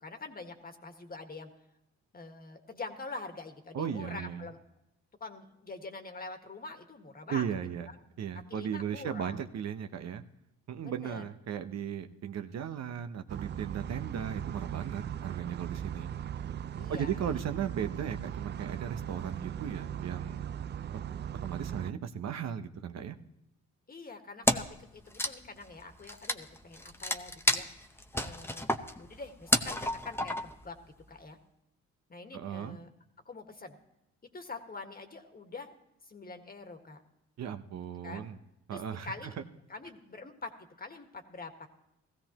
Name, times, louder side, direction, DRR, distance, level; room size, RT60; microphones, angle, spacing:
voice 1, 0.0-1.5 2.1-4.6 5.2-7.5 7.9-8.0 8.5-9.4 10.8-11.2 16.8-17.3 23.9-27.7 28.1-28.7 29.0-31.4 32.1-32.9 33.2-33.8 34.3-35.7 36.0-37.0 38.0-38.3 38.7-39.4 39.7-41.7, left 3 dB, 30° left, 6 dB, 1.7 m, -45 dB
voice 2, 3.7-4.4 7.3-7.9 8.2-10.2 10.7-16.1 16.9-20.4 21.4-23.2 32.3-32.8 37.4-38.4 38.7-39.3, right 8 dB, 60° right, 8 dB, 0.8 m, -36 dB
sound 1, 13.3-21.9, right 9 dB, 35° right, 0.4 m, -38 dB
Wood, 24.4-24.8 25.1-30.7, left 1 dB, 10° left, 0.8 m, -31 dB
17.0 x 15.0 x 3.0 m, 0.87 s
cardioid pair, 90°, 30 cm